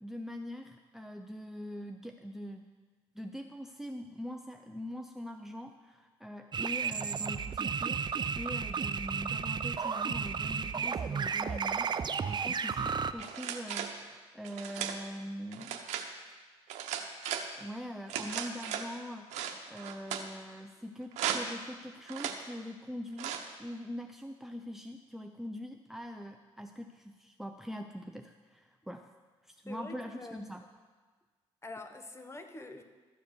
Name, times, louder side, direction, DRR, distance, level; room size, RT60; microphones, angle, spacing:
voice 1, 0.0-2.7 3.1-11.9 12.2-15.9 17.6-29.1 29.4-30.7, equal, 5° right, 5 dB, 0.7 m, -43 dB
sound 1, 6.5-13.1, right 6 dB, 40° right, 0.6 m, -33 dB
sound 2, 13.2-14.0 14.4-15.0 15.5-16.1 16.7-17.5 18.1-18.9 19.3-20.3 21.1-21.6 22.1-22.4 23.2-23.5, right 8 dB, 80° right, 0.9 m, -36 dB
voice 2, 29.7-30.5 31.6-32.8, left 2 dB, 25° left, 7 dB, 1.3 m, -45 dB
13.5 x 7.2 x 6.1 m, 1.4 s
supercardioid pair, 65°, 11 cm